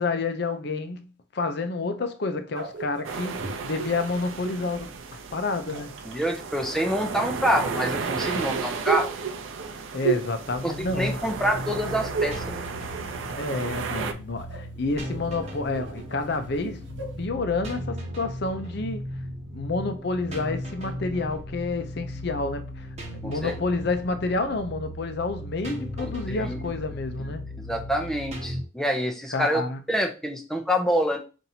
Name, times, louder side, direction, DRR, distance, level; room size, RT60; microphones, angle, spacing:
voice 1, 0.0-5.9 9.9-11.2 13.4-16.8 17.2-19.1 19.5-22.9 23.2-27.4 29.3-29.8, left 3 dB, 55° left, 0.6 m, -29 dB
sound 1, 2.5-4.7 5.5-6.3 7.4-11.4 11.6-12.5 12.8-13.7 14.0-17.2, right 6 dB, 65° right, 0.9 m, -34 dB
sound 2, 3.0-14.1, right 4 dB, 80° right, 0.5 m, -34 dB
voice 2, 6.1-9.1 10.6-12.4 23.2-23.5 26.0-26.7 27.6-29.6 29.9-31.2, equal, 5° left, 0.6 m, -26 dB
sound 3, 10.5-28.6, equal, 35° right, 1.1 m, -37 dB
5.6 x 2.6 x 2.8 m
head